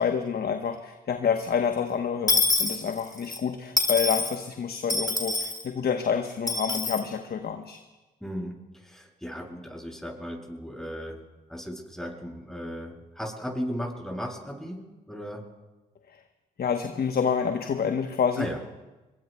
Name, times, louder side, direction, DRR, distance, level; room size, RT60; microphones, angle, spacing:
voice 1, 0.0-7.8 16.1-16.2 16.6-18.7, left 7 dB, 50° left, 6 dB, 1.1 m, -28 dB
Dishes pots and pans / Coin (dropping), 2.3-3.4 3.8-4.4 4.9-5.6 6.5-7.0, left 3 dB, 20° left, 2.9 m, -25 dB
voice 2, 8.2-8.6 8.8-11.2 11.5-14.8 15.1-15.4 18.4-18.6, equal, ahead, -2 dB, 7.7 m, -35 dB
26.5 x 23.0 x 2.3 m, 1.1 s
hypercardioid pair, 45°, 20 cm